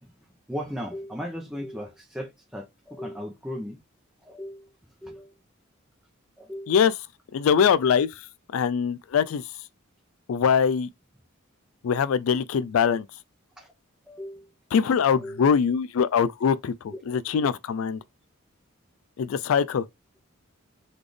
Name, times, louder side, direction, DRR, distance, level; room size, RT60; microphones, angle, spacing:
voice 1, 0.0-3.8 4.2-4.8 5.0-5.4 6.4-6.8 13.6-13.7 14.1-14.5 15.1-15.5 16.9-17.0, equal, 5° right, 0.7 m, -37 dB
voice 2, 7.3-8.1 8.5-9.4 10.3-10.9 11.8-13.1 14.7-18.0 19.2-19.8, left 7 dB, 75° left, 0.4 m, -22 dB
4.0 x 3.2 x 3.3 m
head